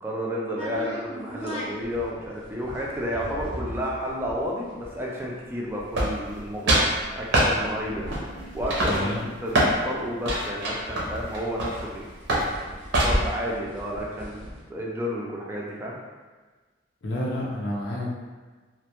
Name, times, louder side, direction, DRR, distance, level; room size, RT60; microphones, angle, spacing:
voice 1, 0.0-6.9 7.2-8.1 8.5-12.1 12.9-16.0, equal, 10° right, -3 dB, 0.3 m, -31 dB
sound 1, 0.6-10.1 10.4-10.5 10.7-14.6, equal, 30° left, 0.6 m, -36 dB
sound 2, 5.9-6.4 6.7-6.9 7.3-7.5 8.1-8.4 8.7-9.8 10.2-11.9 12.3-12.5 12.9-13.4, right 1 dB, 65° right, 0.5 m, -23 dB
voice 2, 8.9-9.3 17.0-18.2, left 1 dB, 85° left, -5 dB, 0.5 m, -29 dB
2.1 x 2.1 x 2.8 m, 1.4 s
head